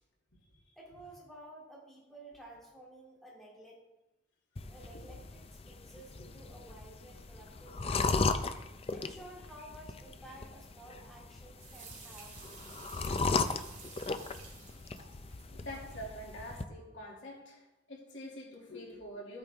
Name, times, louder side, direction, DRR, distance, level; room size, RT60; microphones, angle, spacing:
voice 1, 0.8-3.8 4.7-8.4 8.9-12.4, right 1 dB, ahead, -5 dB, 2.8 m, -53 dB
sound 1, 4.6-16.6, left 3 dB, 30° left, 0.5 m, -37 dB
sound 2, 11.6-16.0, right 5 dB, 40° right, 2.3 m, -52 dB
voice 2, 15.5-19.4, equal, 75° left, -2 dB, 2.5 m, -46 dB
14.0 x 8.8 x 3.5 m, 0.99 s
head